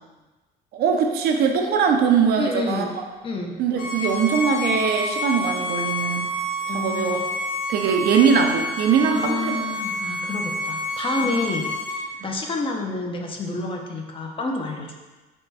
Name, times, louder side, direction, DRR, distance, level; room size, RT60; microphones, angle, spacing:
voice 1, 0.7-2.9 3.6-6.3 6.7-7.2 7.7-9.6 11.4-11.5, right 6 dB, 65° right, 3 dB, 0.5 m, -21 dB
voice 2, 2.4-2.9 3.2-3.6 6.7-7.2 9.1-14.9, left 2 dB, 30° left, 1 dB, 0.5 m, -29 dB
Bowed string instrument, 3.8-12.0, left 1 dB, 55° left, 0.9 m, -28 dB
3.4 x 2.2 x 4.0 m, 1.2 s
cardioid pair, 110°, 17 cm